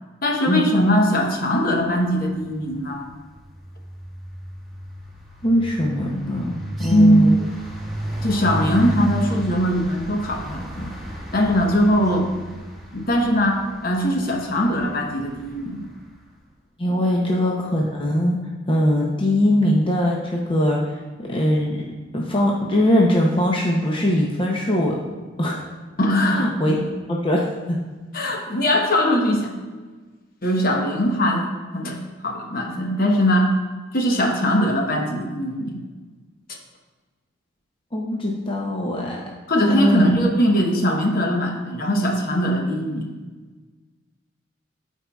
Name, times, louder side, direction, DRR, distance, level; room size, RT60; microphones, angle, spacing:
voice 1, 0.2-3.0 6.9-7.4 8.2-10.9 11.3-12.3 12.9-15.8 17.1-17.2 26.0-26.8 28.1-29.5 30.4-32.0 32.2-33.5 33.9-35.8 39.5-43.1, equal, 50° left, 1 dB, 0.9 m, -20 dB
sound 1, 2.1-2.5 2.8-15.9, right 1 dB, ahead, 1.4 m, -33 dB
voice 2, 5.4-7.3 16.8-18.4 18.7-21.9 22.1-25.0 25.4-25.7 26.3-26.8 27.1-27.8 37.9-39.2 39.7-40.1, left 1 dB, 30° left, -2 dB, 0.6 m, -21 dB
12.5 x 4.5 x 2.3 m, 1.3 s
head